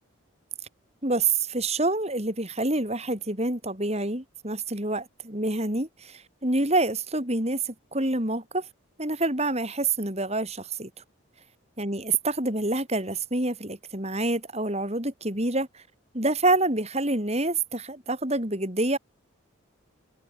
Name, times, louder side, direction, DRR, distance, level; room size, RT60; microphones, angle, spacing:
voice 1, 1.0-8.7 9.0-10.9 11.8-15.8 16.1-19.0, right 2 dB, 30° right, 6.1 m, -27 dB
head